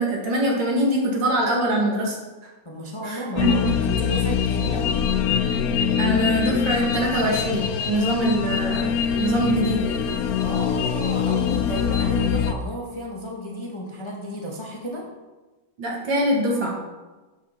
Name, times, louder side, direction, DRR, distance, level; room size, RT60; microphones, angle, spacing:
voice 1, 0.0-2.2 3.0-3.5 6.0-10.0 15.8-16.8, right 1 dB, 70° right, -2 dB, 2.5 m, -23 dB
voice 2, 2.6-5.1 10.4-15.0, equal, 20° left, -2 dB, 1.0 m, -32 dB
sound 1, 3.4-12.5, left 8 dB, 70° left, 0.9 m, -23 dB
11.5 x 5.6 x 4.3 m, 1.2 s
omnidirectional pair, 2.1 m